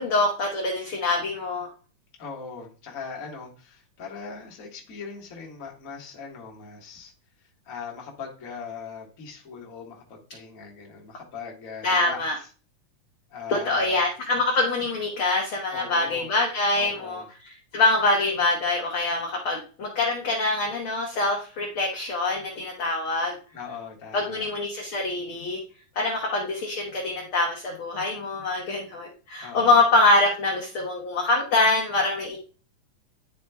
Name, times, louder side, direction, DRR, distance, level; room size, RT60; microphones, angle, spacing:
voice 1, 0.0-1.7 11.8-12.4 13.5-23.3 24.1-25.6 25.9-32.4, left 2 dB, 65° left, -1 dB, 1.3 m, -24 dB
voice 2, 2.2-7.1 7.6-12.5 13.3-14.0 15.7-16.3 16.7-17.3 23.5-24.5 29.4-29.8, left 5 dB, 40° left, -1 dB, 1.2 m, -40 dB
11.5 x 4.4 x 2.3 m, 0.37 s
omnidirectional pair, 3.7 m